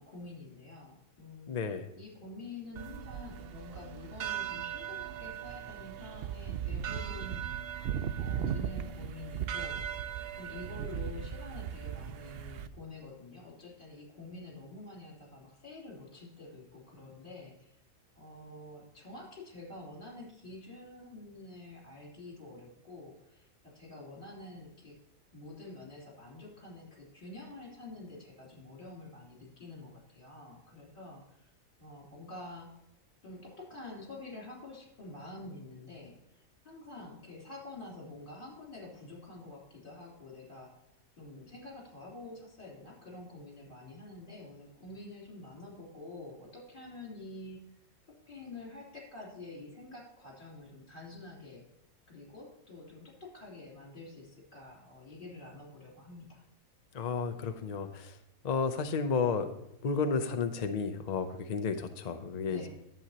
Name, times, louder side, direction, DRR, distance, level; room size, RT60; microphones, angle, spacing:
voice 1, 0.0-1.5 1.9-7.5 8.2-9.8 10.4-17.7 18.2-25.0 25.3-31.5 31.8-32.7 33.2-40.7 41.2-47.6 48.1-51.6 52.1-56.4 62.5-62.7, left 2 dB, 35° left, -3 dB, 3.5 m, -48 dB
voice 2, 1.5-1.9 56.9-58.2 58.4-62.7, left 5 dB, 55° left, 7 dB, 0.4 m, -32 dB
sound 1, 2.8-12.7, right 8 dB, 70° right, 0.6 m, -37 dB
11.0 x 7.9 x 2.9 m, 0.86 s
omnidirectional pair, 1.5 m